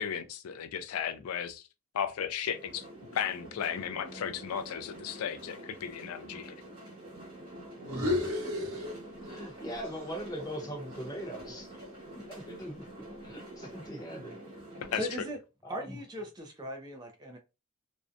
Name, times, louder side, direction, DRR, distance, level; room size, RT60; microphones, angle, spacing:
voice 1, 0.0-1.7 1.9-2.8 3.1-6.5 14.9-15.1, left 8 dB, 75° left, 0.3 m, -35 dB
sound 1, 2.5-15.2, right 1 dB, 40° right, 1.2 m, -47 dB
sound 2, 7.8-9.6 9.8-12.1, left 2 dB, 80° right, 0.8 m, -35 dB
voice 2, 8.3-8.7 9.2-11.9 12.1-14.4 15.6-16.0, equal, 15° left, 0.7 m, -41 dB
voice 3, 14.9-15.4 15.7-17.4, equal, 20° right, 0.3 m, -38 dB
2.5 x 2.1 x 2.5 m
head